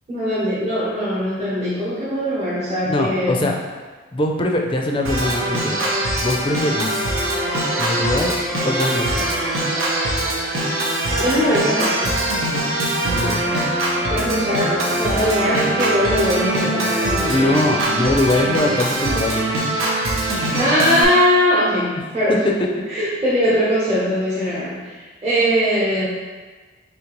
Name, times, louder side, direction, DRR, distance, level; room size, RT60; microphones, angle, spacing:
voice 1, 0.1-3.5 11.2-12.2 14.1-17.6 20.5-22.4 22.9-26.1, equal, 30° right, -9 dB, 1.0 m, -21 dB
voice 2, 2.8-3.5 4.1-5.8 6.2-7.1 7.8-8.3 8.6-9.3 13.2-13.4 17.3-19.5 22.3-22.7, left 1 dB, 25° left, 1 dB, 0.4 m, -21 dB
Organ, 5.0-21.0, right 1 dB, 85° right, 0.9 m, -22 dB
sound 1, 6.4-12.7, right 1 dB, 55° right, 1.1 m, -32 dB
5.0 x 3.1 x 3.0 m, 1.4 s
head